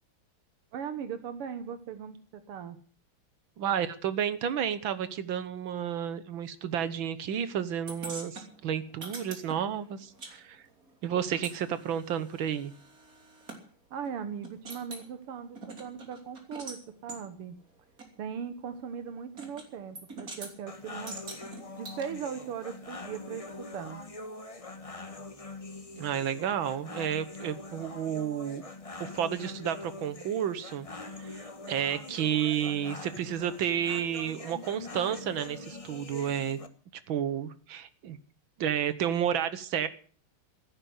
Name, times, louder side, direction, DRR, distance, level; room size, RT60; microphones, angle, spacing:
voice 1, 0.7-2.8 13.9-17.6 18.2-21.2 21.8-24.0, right 7 dB, 85° right, 10 dB, 2.1 m, -39 dB
voice 2, 3.6-10.6 11.0-12.7 26.0-28.6 29.0-30.9 31.2-36.6 37.1-38.2 38.6-39.9, right 9 dB, 65° right, 14 dB, 1.9 m, -31 dB
sound 1, 7.9-10.3 10.6-13.6 14.1-14.2 14.4-15.1 15.6-16.8 17.1-17.2 18.0-18.1 19.4-19.7 20.0-20.5 21.1-22.0, right 3 dB, 40° right, 3.6 m, -44 dB
sound 2, 20.7-36.7, left 2 dB, 20° left, 1.0 m, -44 dB
16.5 x 9.8 x 7.9 m, 0.43 s
omnidirectional pair, 2.4 m